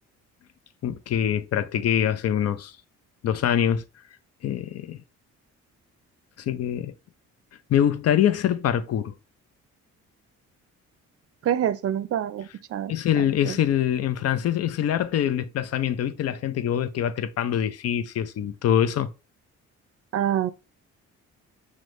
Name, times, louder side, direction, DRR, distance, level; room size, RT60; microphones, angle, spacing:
voice 1, 0.8-2.7 3.2-3.8 4.4-5.0 6.4-6.9 7.7-9.1 12.9-19.1, left 10 dB, 55° left, 0.5 m, -24 dB
voice 2, 11.4-12.9 13.4-13.6 20.1-20.5, right 10 dB, 50° right, 0.5 m, -26 dB
6.2 x 2.1 x 3.1 m
cardioid pair, 90°, 30 cm